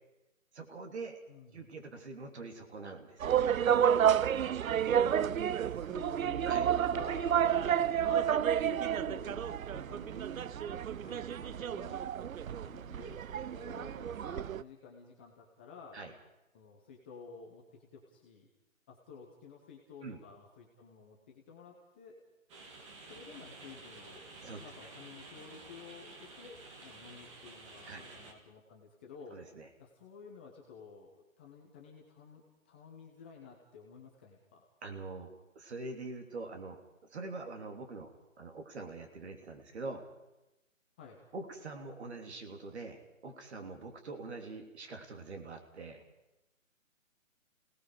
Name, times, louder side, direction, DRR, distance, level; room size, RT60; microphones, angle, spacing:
voice 1, 0.5-1.2 1.5-3.5 6.5-6.7 15.9-16.1 20.0-20.2 24.4-24.6 27.8-28.0 29.3-29.7 34.8-36.8 37.1-40.0 41.3-46.0, right 3 dB, 55° right, 5 dB, 3.3 m, -44 dB
voice 2, 1.3-1.7 5.2-12.1 12.6-16.0 16.5-18.5 18.9-22.2 23.1-24.3 24.6-34.6 41.0-41.2, left 5 dB, 10° left, -1 dB, 0.7 m, -52 dB
sound 1, 3.2-14.6, right 9 dB, 80° right, 0.6 m, -30 dB
sound 2, 22.5-28.3, right 3 dB, 20° right, 2.1 m, -51 dB
28.5 x 18.0 x 5.0 m, 0.96 s
hypercardioid pair, 155°, 40 cm